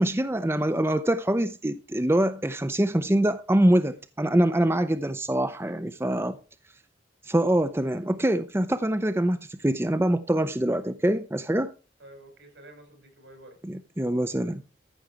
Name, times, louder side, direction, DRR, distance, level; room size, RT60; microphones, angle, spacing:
voice 1, 0.0-6.4 7.2-11.7 13.6-14.6, right 1 dB, 15° right, 0.5 m, -24 dB
voice 2, 5.5-6.2 12.0-13.6, right 1 dB, 75° right, 5.4 m, -51 dB
14.5 x 6.9 x 4.7 m
head